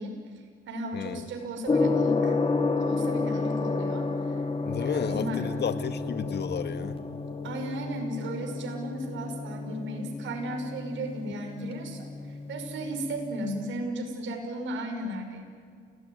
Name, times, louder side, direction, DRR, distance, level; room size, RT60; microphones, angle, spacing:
voice 1, 0.0-2.4 2.8-4.4 4.8-5.5 7.4-15.4, right 1 dB, 75° right, 3 dB, 6.0 m, -35 dB
voice 2, 0.9-1.3 4.7-7.0, left 7 dB, 60° left, 11 dB, 1.8 m, -32 dB
Gong, 1.7-13.6, left 3 dB, 30° left, 2.6 m, -31 dB
29.0 x 19.0 x 9.6 m, 2.1 s
cardioid pair, 90°, 20 cm